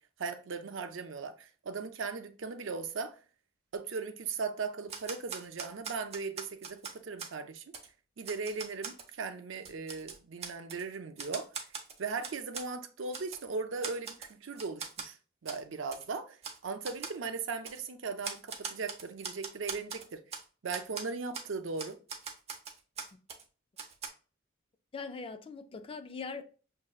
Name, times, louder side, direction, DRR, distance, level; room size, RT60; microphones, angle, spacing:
voice 1, 0.2-3.2 3.7-7.6 8.2-11.5 12.0-15.2 15.4-20.2 20.6-22.0, right 4 dB, 75° right, 0.5 m, -38 dB
Typewriter, 4.9-7.3 7.7-7.9 8.2-9.1 9.5-10.8 11.2-12.7 13.1-13.4 13.8-14.3 14.6-15.1 15.4-15.6 15.9-16.0 16.4-16.6 16.8-17.2 17.6-17.8 18.2-20.4 20.7-21.0 21.3-21.5 21.8-23.4 23.8-24.1, right 5 dB, 35° right, 0.7 m, -41 dB
voice 2, 24.9-26.4, left 4 dB, 30° left, 0.4 m, -41 dB
6.2 x 2.7 x 2.3 m
head